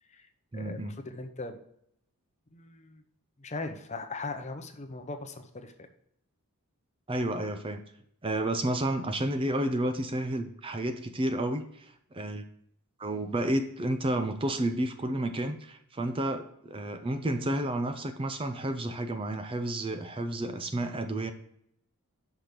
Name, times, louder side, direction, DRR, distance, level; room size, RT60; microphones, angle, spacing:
voice 1, 0.0-1.6 2.5-3.0 3.4-5.9, left 3 dB, 30° left, 6 dB, 0.7 m, -40 dB
voice 2, 0.5-0.9 7.1-7.8 8.2-12.4 13.0-21.3, right 1 dB, 25° right, 8 dB, 0.5 m, -31 dB
5.9 x 5.2 x 6.4 m, 0.72 s
head